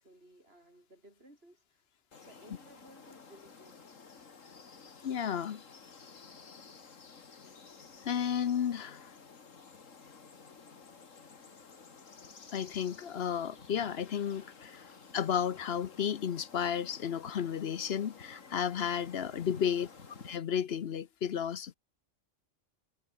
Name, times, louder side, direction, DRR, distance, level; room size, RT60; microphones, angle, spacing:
voice 1, 0.0-1.9 2.3-4.0 19.5-19.9, right 1 dB, 50° right, 7.8 m, -58 dB
sound 1, 2.1-20.4, left 5 dB, 85° left, 2.4 m, -53 dB
voice 2, 5.0-5.6 8.0-9.1 12.5-14.8 15.1-19.9 20.3-21.7, left 8 dB, 55° left, 1.0 m, -33 dB
omnidirectional pair, 1.3 m